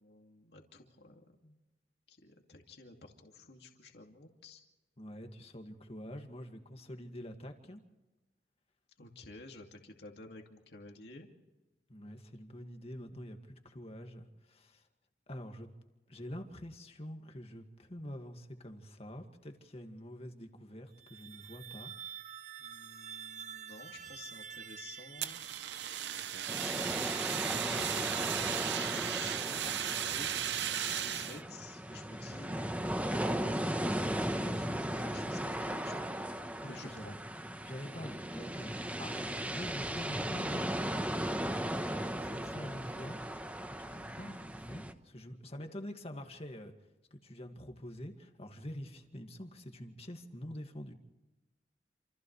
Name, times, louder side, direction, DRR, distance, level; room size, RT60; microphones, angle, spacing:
voice 1, 0.0-1.5 2.1-4.6 9.0-11.3 22.6-25.4 26.6-36.1 36.6-37.1, left 3 dB, 65° left, 2 dB, 2.5 m, -52 dB
voice 2, 5.0-7.8 11.9-14.8 15.3-15.7 16.1-21.9 29.6-29.8 36.6-37.1 37.6-40.8 42.2-43.2 43.7-46.7 47.1-50.9, equal, 35° left, 5 dB, 2.1 m, -46 dB
sound 1, 20.9-27.5, right 8 dB, 45° right, 1.0 m, -48 dB
Fire, 25.2-31.4, right 10 dB, 75° right, 0.8 m, -36 dB
sound 2, 26.5-44.9, right 1 dB, 10° right, 1.1 m, -37 dB
28.5 x 28.0 x 3.3 m, 1.1 s
head